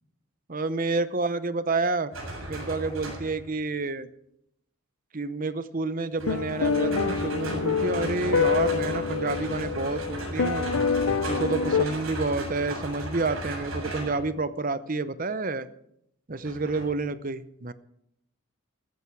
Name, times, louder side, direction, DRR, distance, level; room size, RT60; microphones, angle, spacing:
voice 1, 0.5-2.1 2.5-4.1 5.1-10.7 11.3-15.7 16.3-17.7, right 3 dB, 40° right, 13 dB, 0.8 m, -29 dB
sound 1, 2.1-3.5 6.2-14.2 16.4-16.9, right 1 dB, 70° right, 7.3 m, -36 dB
sound 2, 6.3-11.9, left 5 dB, 80° left, 0.7 m, -26 dB
15.0 x 14.5 x 4.7 m, 0.74 s
head